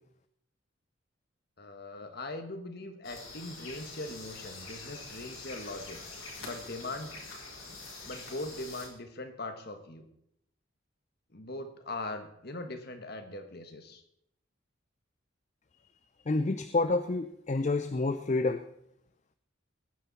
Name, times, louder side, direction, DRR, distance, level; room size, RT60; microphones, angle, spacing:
voice 1, 1.6-6.0 6.4-7.2 8.1-10.1 11.3-14.0, left 2 dB, 50° left, 6 dB, 1.5 m, -40 dB
sound 1, 3.0-8.9, left 3 dB, 80° left, 4.2 m, -45 dB
voice 2, 16.3-18.6, left 3 dB, 35° left, 10 dB, 0.5 m, -28 dB
20.5 x 9.7 x 4.2 m, 0.75 s
head